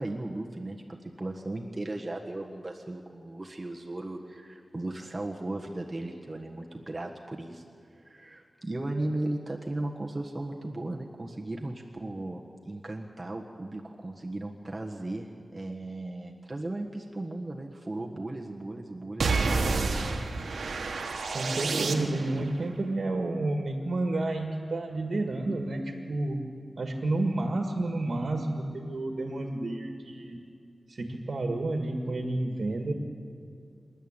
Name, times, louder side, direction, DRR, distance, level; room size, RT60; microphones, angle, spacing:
voice 1, 0.0-7.6 7.9-20.2, right 2 dB, 30° right, 0 dB, 1.5 m, -36 dB
sound 1, 19.2-22.4, right 4 dB, 90° right, 1.4 m, -29 dB
voice 2, 21.3-26.4 26.8-30.4 30.9-32.9, right 2 dB, 65° right, 4 dB, 1.8 m, -30 dB
27.0 x 11.5 x 9.0 m, 2.3 s
wide cardioid pair, 70°, 0 cm